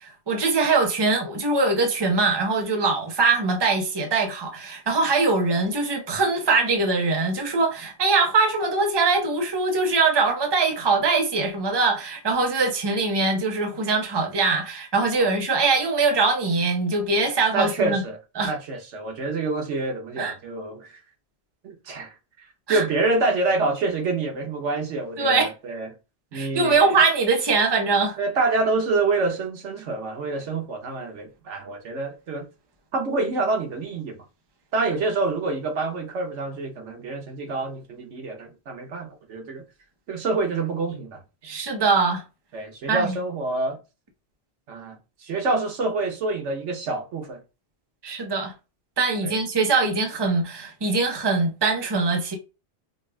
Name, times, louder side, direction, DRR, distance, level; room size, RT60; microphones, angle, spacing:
voice 1, 0.0-18.0 18.4-18.5 20.2-20.3 22.7-22.8 25.2-25.5 26.3-28.2 41.4-42.2 42.9-43.2 48.0-48.5 49.0-52.3, right 3 dB, 25° right, 0.7 m, -22 dB
voice 2, 17.5-18.2 18.4-21.0 21.6-25.9 26.3-26.9 28.2-32.5 32.9-34.2 34.7-39.6 40.1-41.2 42.5-43.8 44.7-47.4 49.2-49.3, right 3 dB, 80° right, 1.2 m, -27 dB
5.1 x 2.4 x 2.2 m
omnidirectional pair, 1.2 m